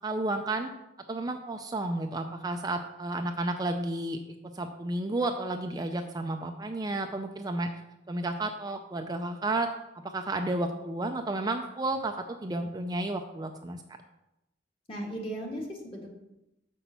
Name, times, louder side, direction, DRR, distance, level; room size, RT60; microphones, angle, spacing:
voice 1, 0.0-0.7 1.1-4.2 4.5-7.7 8.1-9.7 10.1-13.8, right 2 dB, 20° right, 5 dB, 0.4 m, -32 dB
voice 2, 14.9-16.1, right 1 dB, 30° left, 0 dB, 1.5 m, -36 dB
5.9 x 5.3 x 6.8 m, 0.91 s
head